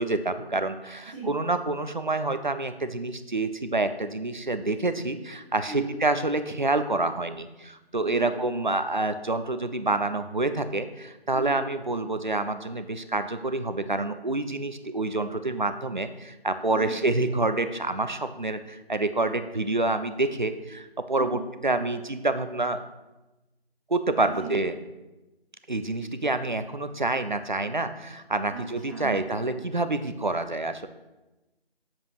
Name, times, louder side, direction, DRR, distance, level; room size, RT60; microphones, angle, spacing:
voice 1, 0.0-22.8 23.9-24.8 25.7-30.9, right 2 dB, 50° right, 10 dB, 0.7 m, -27 dB
voice 2, 16.7-17.0 21.2-21.4 24.2-24.5 28.5-28.6 28.9-29.2, right 4 dB, 15° right, -11 dB, 2.3 m, -37 dB
8.5 x 7.4 x 5.0 m, 1.0 s
figure-of-eight pair, 165°, 31 cm